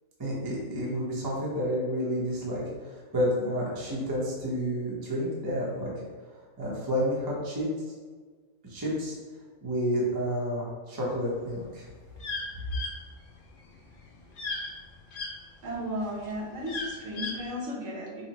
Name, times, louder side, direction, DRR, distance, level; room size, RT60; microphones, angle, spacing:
voice 1, 0.2-5.9 6.6-7.7 8.6-9.1 9.6-11.9, equal, 20° right, -5 dB, 0.6 m, -30 dB
chesnut mandibled toucan, 11.5-15.3 15.8-17.5, left 3 dB, 55° left, 0.6 m, -35 dB
voice 2, 15.6-18.2, equal, 65° right, -4 dB, 1.3 m, -34 dB
5.5 x 2.1 x 2.9 m, 1.5 s
omnidirectional pair, 1.5 m